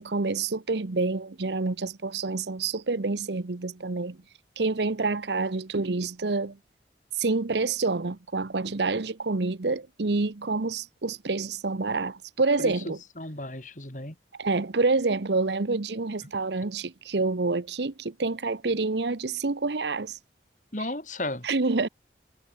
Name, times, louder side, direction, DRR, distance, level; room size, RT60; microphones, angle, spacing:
voice 1, 0.0-4.2 4.6-6.6 7.2-13.0 14.4-20.2 21.4-21.9, right 3 dB, 80° right, 0.9 m, -27 dB
voice 2, 12.6-14.2 20.7-21.5, left 1 dB, 45° left, 5.5 m, -34 dB
head